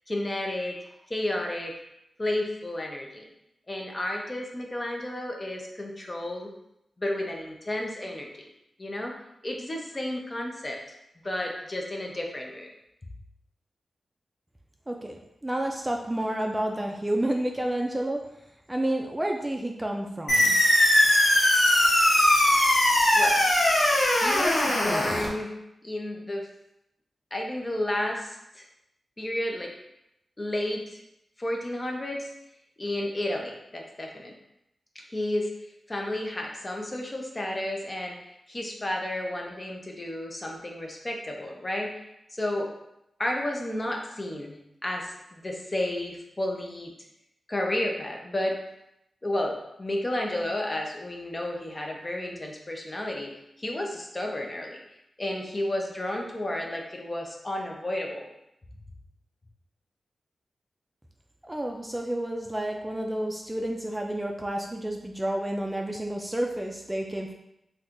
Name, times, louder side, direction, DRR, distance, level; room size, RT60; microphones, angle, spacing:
voice 1, 0.1-0.8 1.1-1.7 2.2-3.2 3.7-6.5 7.0-8.5 8.8-9.1 9.4-10.8 11.2-12.7 23.1-23.4 24.1-25.5 25.8-26.5 27.3-28.6 29.2-29.7 30.4-31.0 31.4-32.3 32.8-34.3 34.9-35.5 35.9-38.2 38.5-42.0 42.3-42.7 43.2-46.9 47.5-48.6 49.2-54.8 55.2-58.3, left 1 dB, 30° left, 1 dB, 0.6 m, -32 dB
voice 2, 15.4-18.2 18.7-20.6 61.4-67.3, right 1 dB, 15° right, 1 dB, 0.4 m, -30 dB
sound 1, 20.3-25.3, left 1 dB, 75° left, 0.9 m, -20 dB
4.1 x 2.3 x 2.5 m, 0.83 s
cardioid pair, 60°, 0 cm